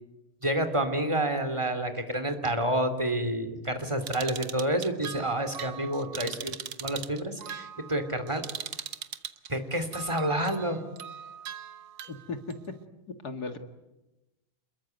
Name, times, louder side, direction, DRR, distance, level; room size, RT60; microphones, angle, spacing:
voice 1, 0.4-6.5 6.8-8.4 9.5-10.8, right 1 dB, 15° right, 8 dB, 2.8 m, -29 dB
sound 1, 4.0-9.5 9.9-12.5, right 9 dB, 60° right, 1.8 m, -40 dB
voice 2, 12.1-12.4 13.2-13.6, left 3 dB, 45° left, 8 dB, 2.3 m, -36 dB
28.0 x 22.5 x 9.3 m, 1.0 s
omnidirectional pair, 2.4 m